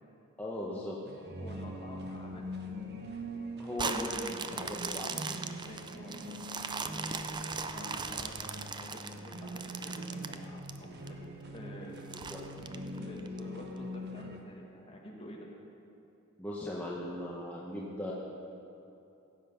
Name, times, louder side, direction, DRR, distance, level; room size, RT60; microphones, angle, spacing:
voice 1, 0.4-1.0 3.6-5.1 12.0-12.4 16.4-18.1, left 1 dB, 10° left, -6 dB, 1.0 m, -38 dB
sound 1, 1.1-14.4, equal, 50° right, 1.1 m, -43 dB
voice 2, 1.4-2.4 5.6-11.2 11.5-12.2 12.8-15.5, equal, 30° left, -2 dB, 1.8 m, -49 dB
sound 2, 3.7-11.1 11.6-11.7 12.1-13.4 13.9-14.0, right 5 dB, 20° right, 0.4 m, -39 dB
16.0 x 7.6 x 5.7 m, 2.8 s
head